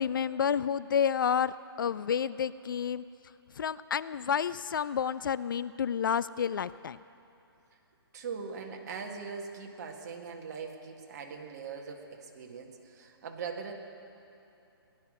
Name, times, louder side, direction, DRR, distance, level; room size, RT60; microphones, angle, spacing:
voice 1, 0.0-3.1 3.6-7.0, left 7 dB, 55° left, 17 dB, 0.4 m, -30 dB
voice 2, 8.1-13.7, right 5 dB, 40° right, 2 dB, 1.8 m, -41 dB
18.0 x 11.5 x 6.2 m, 2.8 s
hypercardioid pair, 160°, 13 cm